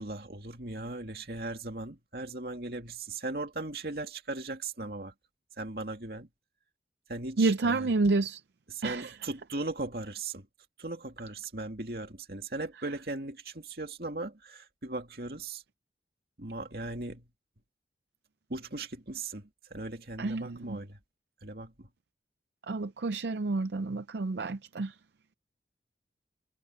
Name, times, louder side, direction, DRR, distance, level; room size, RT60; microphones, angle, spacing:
voice 1, 0.0-5.1 5.6-6.3 7.1-7.9 8.8-10.5 10.8-15.6 16.4-17.3 18.5-21.0 21.4-21.9, right 2 dB, 60° right, 2.6 m, -38 dB
voice 2, 7.4-8.4 8.8-9.2 20.2-20.8 22.7-25.0, right 3 dB, 75° right, 0.5 m, -29 dB
head